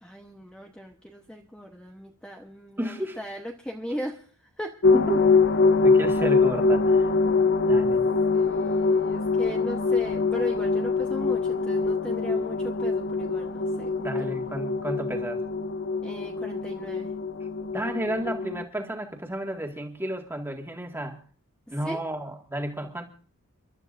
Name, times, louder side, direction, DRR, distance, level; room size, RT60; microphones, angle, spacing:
voice 1, 0.0-4.8 8.3-14.4 16.0-17.1 21.8-22.0, equal, 5° left, 2 dB, 1.0 m, -38 dB
voice 2, 2.8-3.2 4.9-5.2 5.8-7.1 7.7-8.1 14.0-15.4 17.7-21.2 21.7-23.0, right 1 dB, 10° right, 3 dB, 1.9 m, -32 dB
sound 1, 4.8-18.6, left 4 dB, 50° left, 0.7 m, -24 dB
30.0 x 12.5 x 2.6 m, 0.43 s
head